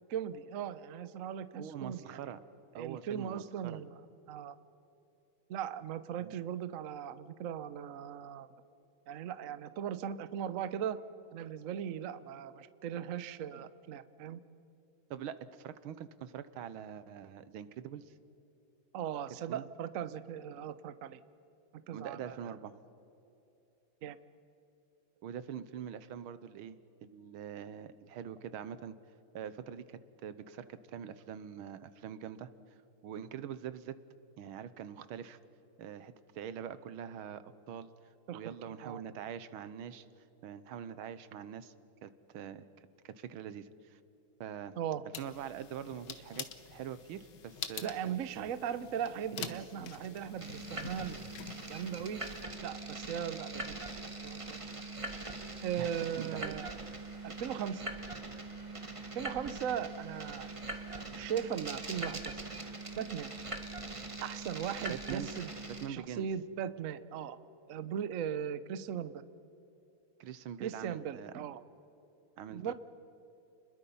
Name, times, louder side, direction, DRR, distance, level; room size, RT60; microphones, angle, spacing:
voice 1, 0.1-2.2 2.8-4.0 4.3-4.6 5.5-8.5 9.1-11.0 11.3-14.4 18.9-21.2 21.9-22.4 24.0-24.2 38.3-39.0 44.8-45.0 47.8-51.2 51.7-52.2 52.6-53.8 54.2-54.6 55.6-56.8 57.2-57.9 59.1-60.5 60.8-62.5 63.0-63.3 64.2-65.5 65.9-67.4 67.7-69.2 70.6-71.6 72.5-72.7, right 9 dB, 60° right, 13 dB, 0.9 m, -38 dB
voice 2, 1.6-2.4 2.7-3.8 6.2-6.4 15.1-18.1 19.5-19.6 21.9-22.7 25.2-29.0 29.3-32.5 33.0-34.0 34.4-35.4 35.8-37.9 38.3-40.1 40.4-41.7 42.0-42.7 43.0-44.0 44.4-44.7 45.2-47.9 48.4-48.5 49.3-49.6 55.8-56.5 64.9-65.3 65.8-66.3 70.2-71.3 72.4-72.7, right 9 dB, 85° right, 14 dB, 1.7 m, -44 dB
sound 1, 45.1-52.4, left 8 dB, 60° left, 1.6 m, -47 dB
sound 2, 50.4-65.9, right 2 dB, 15° right, 1.4 m, -42 dB
30.0 x 21.5 x 5.5 m, 2.8 s
omnidirectional pair, 2.3 m